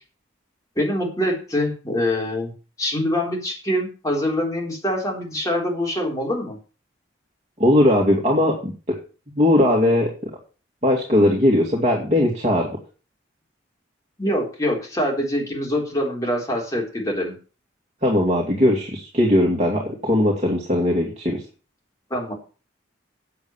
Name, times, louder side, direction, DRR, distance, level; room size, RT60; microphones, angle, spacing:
voice 1, 0.8-2.5 2.8-6.6 14.2-17.3 22.1-22.3, left 1 dB, 15° left, -1 dB, 3.9 m, -24 dB
voice 2, 7.6-8.7 9.4-10.1 10.8-12.7 18.0-21.4, left 1 dB, 35° right, -1 dB, 2.5 m, -19 dB
8.7 x 7.8 x 7.2 m, 0.35 s
head